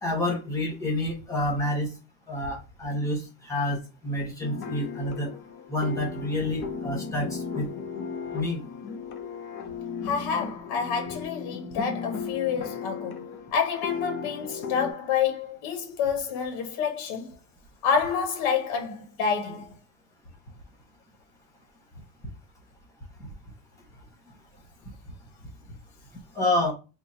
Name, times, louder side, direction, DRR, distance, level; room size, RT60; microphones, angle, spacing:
voice 1, 0.0-1.9 2.3-5.3 5.7-7.6 8.3-8.6 26.3-26.7, left 1 dB, 5° left, 1.0 m, -28 dB
sound 1, 4.4-14.9, left 5 dB, 30° left, 0.4 m, -36 dB
voice 2, 10.0-17.3 17.8-19.7, left 6 dB, 75° left, 0.9 m, -28 dB
3.8 x 2.0 x 4.2 m
cardioid pair, 170°, 45 cm